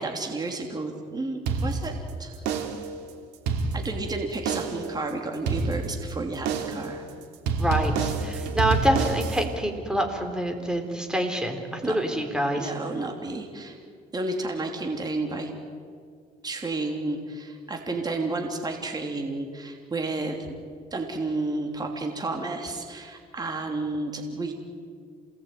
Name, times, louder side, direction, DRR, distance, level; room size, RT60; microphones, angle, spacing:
voice 1, 0.0-2.4 3.7-7.0 11.8-12.0 12.5-13.8 14.1-15.5 16.4-20.5 20.9-24.5, right 2 dB, 25° right, 3 dB, 3.1 m, -31 dB
sound 1, 1.5-2.1 2.5-3.0 3.3-4.1 4.5-4.9 5.5-6.1 6.5-6.9 7.5-9.5, right 4 dB, 85° right, 3.0 m, -27 dB
voice 2, 7.6-12.7, right 1 dB, 5° right, 4 dB, 4.0 m, -26 dB
28.0 x 19.0 x 9.4 m, 2.1 s
cardioid pair, 110°, 17 cm